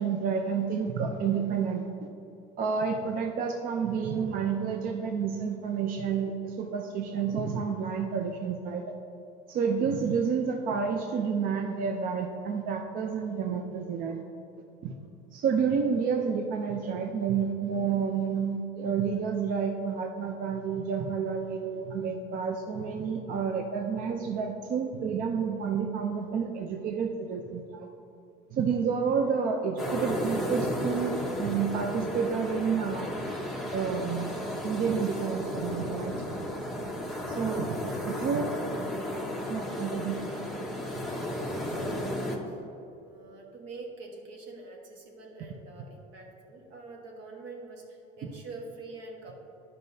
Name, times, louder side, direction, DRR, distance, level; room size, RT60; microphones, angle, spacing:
voice 1, 0.0-2.1 2.6-8.8 9.5-14.2 14.8-14.9 15.3-27.9 28.5-33.1 33.7-34.3 34.6-36.4 37.3-38.5 39.5-40.2, right 6 dB, 50° right, 4 dB, 0.5 m, -30 dB
sound 1, 29.8-42.4, left 1 dB, ahead, 0.8 m, -34 dB
voice 2, 37.3-38.0 41.5-42.6 43.0-49.3, right 3 dB, 80° right, 0 dB, 1.4 m, -46 dB
10.5 x 5.4 x 2.7 m, 2.8 s
cardioid pair, 135°, 18 cm